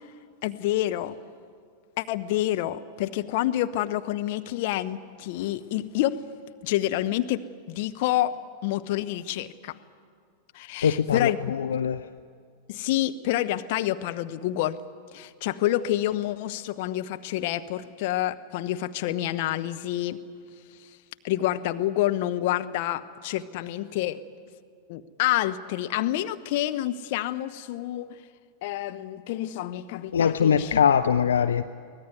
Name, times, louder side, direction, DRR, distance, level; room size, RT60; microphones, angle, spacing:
voice 1, 0.4-1.2 2.0-6.2 6.6-9.8 10.5-11.4 12.7-14.8 15.1-20.2 21.2-24.2 24.9-28.2 28.6-30.8, left 14 dB, 50° left, 10 dB, 0.8 m, -28 dB
voice 2, 10.8-12.0 30.1-31.6, left 7 dB, 65° left, 11 dB, 0.5 m, -22 dB
24.0 x 18.0 x 9.3 m, 2.1 s
figure-of-eight pair, 90°, 0 cm